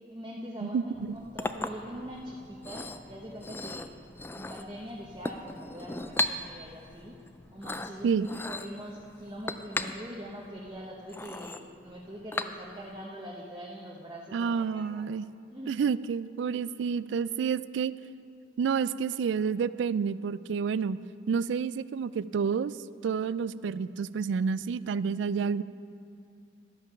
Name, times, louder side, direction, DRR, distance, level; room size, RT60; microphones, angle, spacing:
voice 1, 0.1-3.9 4.3-7.1 7.5-15.1 15.5-15.8, equal, 25° right, -3 dB, 0.9 m, -43 dB
Chink clink, 0.9-13.0, left 2 dB, 10° left, 0.3 m, -38 dB
voice 2, 14.3-15.3 15.7-17.9 18.6-21.0 21.3-22.7 23.0-25.6, right 6 dB, 75° right, 17 dB, 0.3 m, -29 dB
12.5 x 8.9 x 5.8 m, 2.5 s
head